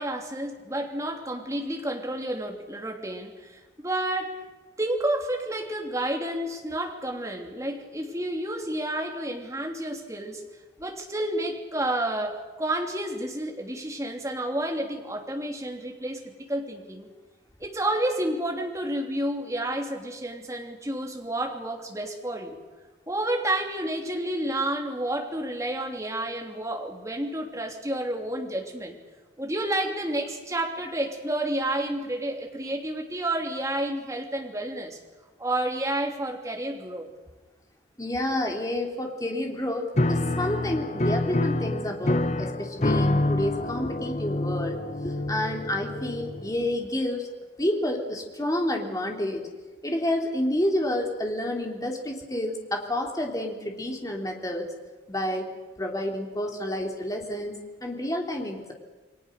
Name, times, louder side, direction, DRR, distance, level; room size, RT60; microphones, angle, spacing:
voice 1, 0.0-4.4 4.8-10.4 10.8-17.1 17.6-22.6 23.1-28.9 29.4-35.0 35.4-37.1, right 1 dB, 15° right, 1 dB, 3.1 m, -30 dB
voice 2, 38.0-44.8 45.0-47.3 47.6-49.4 49.8-54.7 55.1-55.5 55.8-58.7, left 1 dB, 20° left, 1 dB, 3.3 m, -29 dB
Piano, 40.0-46.7, left 2 dB, 40° left, 0.9 m, -27 dB
29.0 x 22.0 x 6.7 m, 1.3 s
head